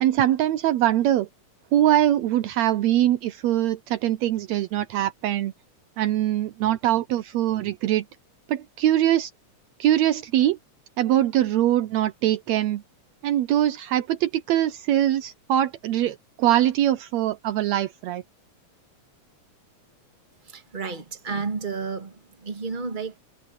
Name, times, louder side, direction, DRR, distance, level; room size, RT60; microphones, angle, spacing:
voice 1, 0.0-1.3 1.7-5.5 6.0-8.1 8.5-9.3 9.8-10.6 11.0-12.8 13.2-18.2, right 12 dB, 75° right, 1.9 m, -22 dB
voice 2, 20.5-22.2 22.4-23.1, right 4 dB, 20° right, 2.0 m, -31 dB
omnidirectional pair, 3.3 m